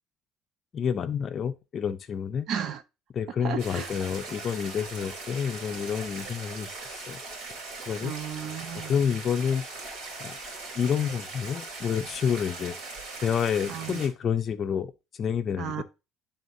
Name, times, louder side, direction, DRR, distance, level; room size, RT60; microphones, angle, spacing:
voice 1, 0.7-2.5 3.1-7.2 7.9-8.1 8.8-9.6 10.2-10.4 10.7-12.8 13.2-15.8, left 7 dB, 35° left, 0.6 m, -29 dB
voice 2, 2.5-2.8 3.4-3.9 8.0-8.9 13.7-14.0 15.6-15.8, right 8 dB, 55° right, 0.8 m, -34 dB
sound 1, 3.6-14.1, right 3 dB, 70° right, 3.0 m, -40 dB
11.0 x 3.6 x 2.7 m
cardioid pair, 140°, 0 cm